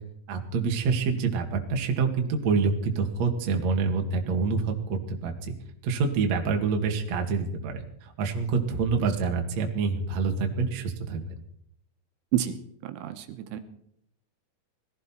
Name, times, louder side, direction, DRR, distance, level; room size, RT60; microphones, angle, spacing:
voice 1, 0.3-5.5 5.8-11.2, right 5 dB, 50° right, 3 dB, 2.1 m, -27 dB
voice 2, 12.8-13.6, right 12 dB, 80° right, 8 dB, 3.5 m, -29 dB
20.5 x 15.5 x 4.5 m, 0.69 s
omnidirectional pair, 6.0 m